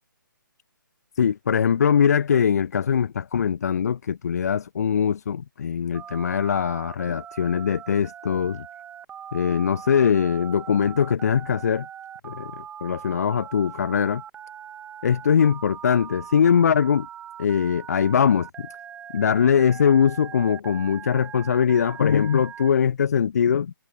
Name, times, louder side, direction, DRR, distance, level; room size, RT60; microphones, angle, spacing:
voice 1, 1.2-8.7 9.3-11.9 12.2-14.2 15.0-17.1 17.4-18.7 19.1-23.7, left 7 dB, 50° left, 0.6 m, -22 dB
Telephone, 5.9-22.7, right 9 dB, 10° right, 1.5 m, -41 dB
figure-of-eight pair, 140°, 11 cm